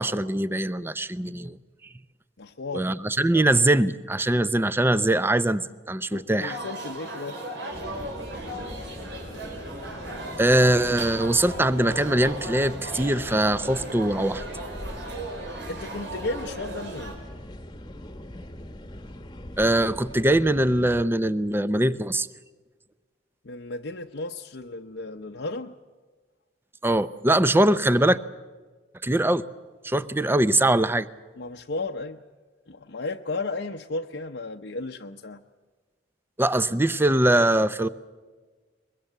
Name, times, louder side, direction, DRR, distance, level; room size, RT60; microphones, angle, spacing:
voice 1, 0.0-1.6 2.7-6.6 10.4-14.4 19.6-22.3 26.8-28.2 29.0-29.4 29.8-31.1 36.4-37.9, right 1 dB, 10° right, 14 dB, 0.7 m, -22 dB
voice 2, 2.4-2.9 6.1-7.4 15.7-17.2 23.4-25.7 31.4-32.2 32.7-35.4, left 2 dB, 70° left, 2 dB, 0.8 m, -34 dB
sound 1, 6.4-17.2, right 1 dB, 70° right, 5.1 m, -37 dB
sound 2, 7.7-21.0, left 1 dB, 25° left, 1.2 m, -41 dB
23.0 x 22.5 x 8.0 m, 1.4 s
head